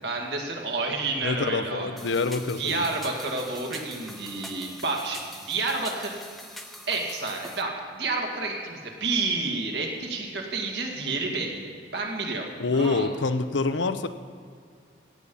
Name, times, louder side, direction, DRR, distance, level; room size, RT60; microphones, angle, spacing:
voice 1, 0.0-2.1 2.6-6.2 6.9-12.5 12.7-13.1, right 3 dB, 75° right, 1 dB, 2.1 m, -30 dB
voice 2, 1.2-2.8 12.6-14.1, left 3 dB, 90° left, 10 dB, 0.7 m, -26 dB
sound 1, 2.0-7.6, left 1 dB, ahead, 0.8 m, -44 dB
16.0 x 5.4 x 8.4 m, 2.3 s
head